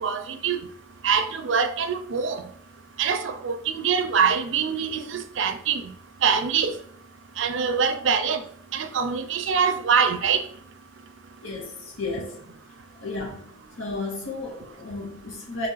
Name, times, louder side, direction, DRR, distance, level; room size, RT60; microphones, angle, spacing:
voice 1, 0.0-0.6 1.0-2.4 3.0-5.9 6.2-6.8 7.4-8.4 8.7-10.4, right 6 dB, 75° right, 0.5 m, -24 dB
voice 2, 11.4-12.4 13.0-15.7, left 3 dB, 85° left, 1.0 m, -33 dB
3.9 x 3.0 x 3.9 m
head